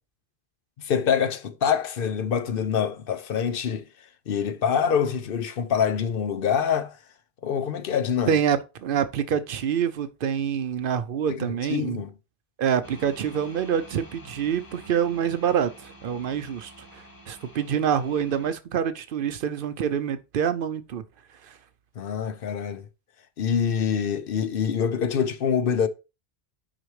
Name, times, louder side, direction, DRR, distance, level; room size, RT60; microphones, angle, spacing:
voice 1, 0.8-7.0 7.4-8.4 11.3-12.1 22.0-22.9 23.4-25.9, left 7 dB, 65° left, 0.8 m, -25 dB
voice 2, 8.3-12.0 12.6-21.0 21.4-21.6, right 8 dB, 65° right, 0.7 m, -26 dB
sound 1, 12.8-18.5, right 1 dB, 20° left, 0.9 m, -48 dB
6.2 x 5.0 x 3.1 m
omnidirectional pair, 1.0 m